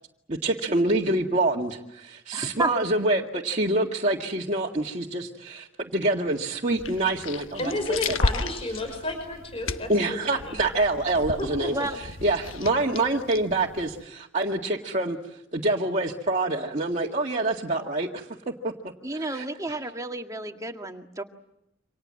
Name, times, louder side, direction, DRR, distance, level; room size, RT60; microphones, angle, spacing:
voice 1, 0.3-5.7 5.9-8.2 9.9-11.8 12.2-15.2 15.5-18.3 18.6-18.7 19.1-19.4, right 2 dB, 35° right, -1 dB, 2.0 m, -26 dB
voice 2, 2.3-2.7 11.7-12.0 19.0-21.2, right 2 dB, 15° right, 4 dB, 2.0 m, -31 dB
sound 1, 6.7-14.0, left 3 dB, 80° left, 1.2 m, -34 dB
voice 3, 7.6-10.6 11.4-11.7, left 1 dB, 30° left, 5 dB, 5.6 m, -31 dB
29.0 x 26.0 x 7.7 m, 0.85 s
head